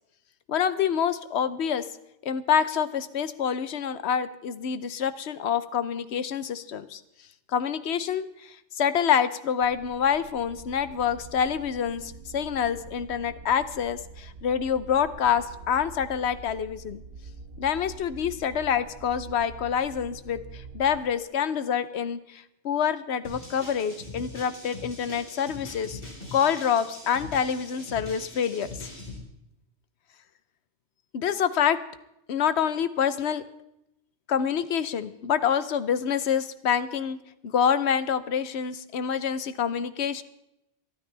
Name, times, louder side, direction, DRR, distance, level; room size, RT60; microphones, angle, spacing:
voice 1, 0.5-1.9 2.2-7.0 7.5-17.0 17.6-26.0 26.3-28.9 31.1-31.8 32.3-33.4 34.3-40.2, left 8 dB, 65° left, 13 dB, 1.0 m, -27 dB
sound 1, 9.6-21.0, right 4 dB, 60° right, 1.2 m, -45 dB
sound 2, 23.2-29.2, left 2 dB, 50° left, 4.2 m, -42 dB
23.0 x 12.0 x 3.4 m, 0.84 s
omnidirectional pair, 1.2 m